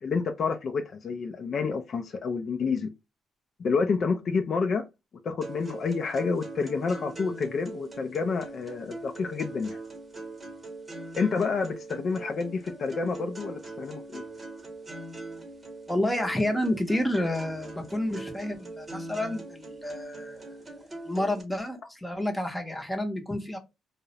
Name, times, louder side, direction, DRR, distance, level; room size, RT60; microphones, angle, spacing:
voice 1, 0.0-2.9 3.6-4.8 5.2-9.8 11.2-14.2, left 5 dB, 50° left, 0.3 m, -29 dB
sound 1, 5.4-21.4, right 2 dB, 20° right, 0.9 m, -42 dB
voice 2, 15.9-20.6 21.0-23.6, left 1 dB, 5° left, 0.6 m, -30 dB
2.3 x 2.0 x 2.7 m
cardioid pair, 90°, 0 cm